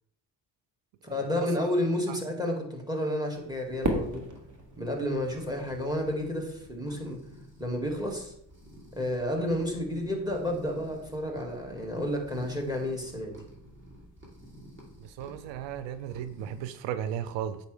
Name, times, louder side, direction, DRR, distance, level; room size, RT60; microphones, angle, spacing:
voice 1, 1.0-4.2 4.8-7.2 7.6-8.3 8.9-13.4, left 1 dB, 10° right, 2 dB, 2.1 m, -31 dB
sound 1, 3.3-16.6, equal, 25° right, 3.1 m, -51 dB
Fireworks, 3.8-6.1, right 1 dB, 40° right, 1.7 m, -34 dB
voice 2, 15.0-17.6, right 9 dB, 85° right, 12 dB, 0.6 m, -35 dB
8.1 x 5.9 x 3.4 m, 0.72 s
cardioid pair, 75°, 43 cm